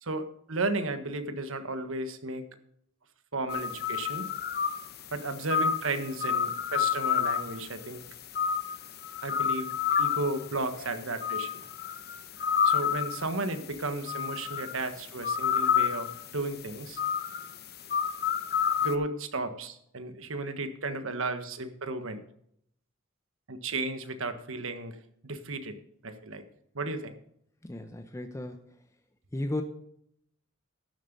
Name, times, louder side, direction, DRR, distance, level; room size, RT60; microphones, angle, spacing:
voice 1, 0.0-2.5 3.3-4.3 5.1-8.0 9.2-11.6 12.6-17.0 18.8-22.2 23.5-24.9 25.2-25.8 26.0-26.4 26.7-27.1, right 2 dB, 70° right, 9 dB, 1.4 m, -34 dB
sound 1, 3.5-19.0, left 8 dB, 50° left, 0.9 m, -30 dB
voice 2, 27.6-28.8 29.3-29.6, left 1 dB, 15° left, 6 dB, 0.8 m, -35 dB
12.0 x 7.8 x 5.3 m, 0.69 s
head